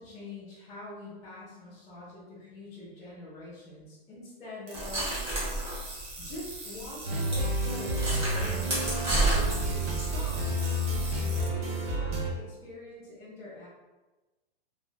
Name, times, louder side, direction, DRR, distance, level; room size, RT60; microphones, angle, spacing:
voice 1, 0.0-5.1 6.2-9.7 10.0-10.7 11.5-13.7, left 2 dB, 10° left, -11 dB, 0.6 m, -44 dB
sound 1, 4.7-6.5 6.8-6.9 7.3-7.4 7.9-10.7, right 1 dB, 20° right, 0.9 m, -30 dB
sound 2, 4.7-11.5, right 2 dB, 60° right, 1.3 m, -43 dB
sound 3, 7.0-12.3, right 1 dB, 85° right, 0.9 m, -30 dB
3.1 x 2.5 x 2.3 m, 1.1 s
hypercardioid pair, 155°, 29 cm